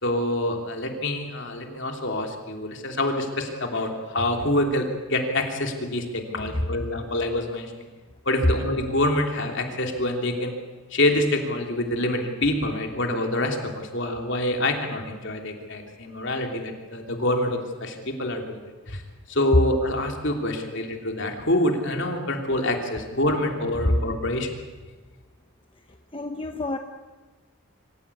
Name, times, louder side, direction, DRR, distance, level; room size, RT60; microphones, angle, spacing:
voice 1, 0.0-7.9 8.2-10.6 10.9-19.0 19.3-24.5, left 1 dB, 55° left, 3 dB, 3.1 m, -26 dB
voice 2, 26.1-26.8, left 1 dB, 25° left, 5 dB, 0.9 m, -25 dB
25.5 x 15.5 x 8.6 m, 1.3 s
head